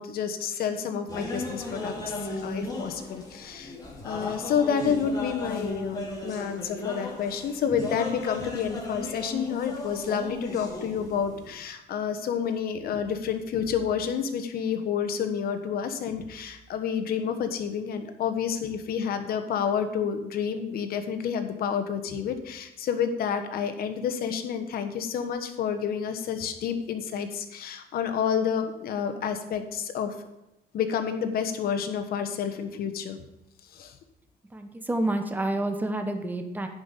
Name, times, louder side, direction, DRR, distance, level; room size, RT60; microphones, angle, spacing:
voice 1, 0.0-2.1 2.4-3.8 4.0-30.1 30.7-33.2 33.7-34.0, left 7 dB, 65° left, 8 dB, 1.3 m, -29 dB
sound 1, 1.1-11.6, left 2 dB, 20° left, 2.5 m, -36 dB
voice 2, 34.5-36.7, right 1 dB, 10° right, 6 dB, 1.1 m, -29 dB
10.5 x 5.5 x 6.6 m, 0.91 s
cardioid pair, 110°, 17 cm